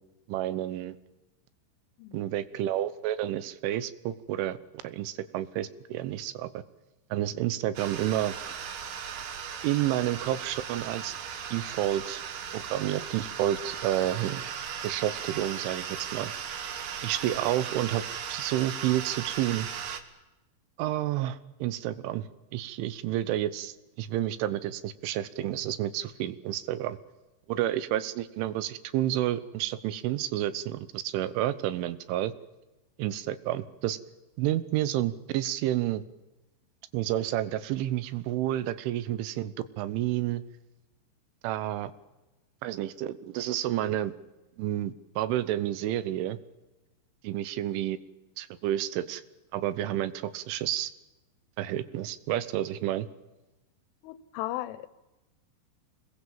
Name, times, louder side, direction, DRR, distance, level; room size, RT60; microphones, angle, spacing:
voice 1, 0.3-1.0 2.1-4.6 4.8-6.6 7.1-8.4 9.6-11.2 11.5-12.2 12.5-14.4 14.8-16.3 17.0-18.1 18.3-19.7 20.8-27.0 27.5-32.3 33.0-34.0 34.4-36.0 36.9-40.4 41.4-41.9 42.6-44.1 44.6-46.4 47.2-48.0 48.4-49.2 49.5-50.9 51.6-53.1, right 13 dB, 85° right, 3.4 m, -30 dB
sound 1, 7.8-20.0, right 8 dB, 60° right, 2.6 m, -37 dB
voice 2, 54.0-54.9, left 15 dB, 90° left, 3.5 m, -36 dB
25.0 x 21.0 x 7.4 m
omnidirectional pair, 5.5 m